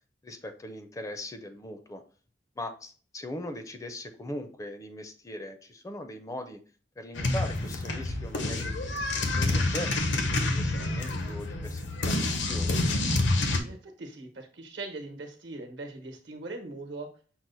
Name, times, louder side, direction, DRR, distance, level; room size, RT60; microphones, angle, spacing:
voice 1, 0.2-2.0 2.6-6.6 7.0-8.7 9.2-12.7, left 1 dB, 20° left, 7 dB, 0.4 m, -40 dB
sound 1, 7.2-13.6, left 2 dB, 80° left, 0.8 m, -28 dB
voice 2, 13.6-17.1, right 2 dB, 75° right, 4 dB, 1.0 m, -40 dB
6.1 x 2.1 x 3.9 m, 0.41 s
head